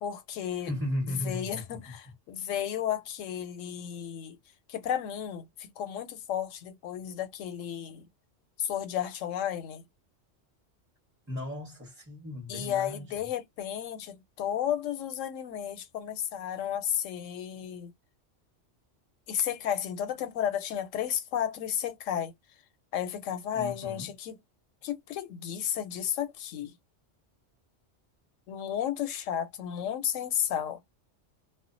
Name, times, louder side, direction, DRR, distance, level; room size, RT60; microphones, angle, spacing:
voice 1, 0.0-0.7 1.1-4.4 4.7-8.1 8.6-9.8 12.5-17.9 19.3-22.3 22.9-24.4 24.8-26.8 28.5-30.8, left 10 dB, 85° left, 0.9 m, -33 dB
voice 2, 0.6-2.0 11.3-13.3 23.5-24.1, left 1 dB, 10° right, 0.7 m, -36 dB
2.3 x 2.1 x 2.5 m
omnidirectional pair, 1.3 m